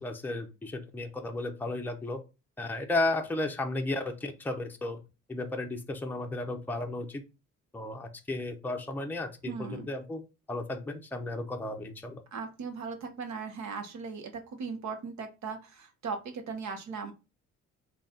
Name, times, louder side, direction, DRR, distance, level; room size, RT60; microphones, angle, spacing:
voice 1, 0.0-2.2 2.6-5.0 5.3-7.2 7.7-10.2 10.5-12.2, left 2 dB, 5° left, 4 dB, 0.6 m, -34 dB
voice 2, 9.5-9.9 12.3-17.1, right 5 dB, 65° right, 5 dB, 0.9 m, -38 dB
3.9 x 2.3 x 3.7 m, 0.29 s
cardioid pair, 90°, 30 cm